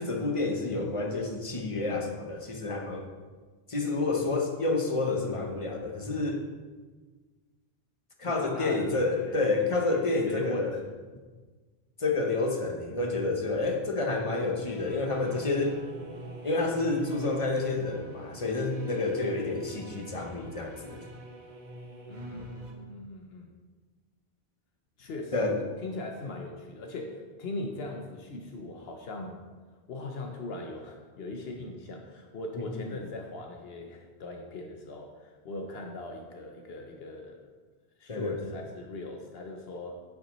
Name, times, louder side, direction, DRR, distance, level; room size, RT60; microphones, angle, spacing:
voice 1, 0.0-3.1 3.7-6.4 8.2-10.8 12.0-15.8 16.4-21.0 25.3-25.6 32.5-32.7 38.1-38.6, left 3 dB, 35° left, 2 dB, 0.9 m, -29 dB
voice 2, 8.2-10.8 22.1-23.5 25.0-25.3 25.8-29.4 29.9-37.5 38.0-40.0, left 2 dB, 70° left, 2 dB, 1.0 m, -40 dB
sound 1, 14.3-22.7, right 2 dB, 45° right, 0.9 m, -45 dB
7.9 x 7.0 x 3.0 m, 1.4 s
omnidirectional pair, 1.1 m